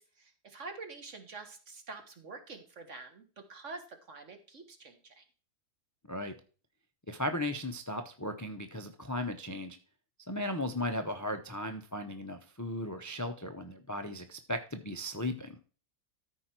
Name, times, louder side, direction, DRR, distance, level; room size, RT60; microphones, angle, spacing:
voice 1, 0.0-5.2, right 3 dB, 55° right, 6 dB, 1.8 m, -47 dB
voice 2, 7.1-9.8 10.3-15.6, left 1 dB, 20° left, 6 dB, 0.5 m, -36 dB
13.5 x 4.9 x 4.4 m, 0.38 s
omnidirectional pair, 1.6 m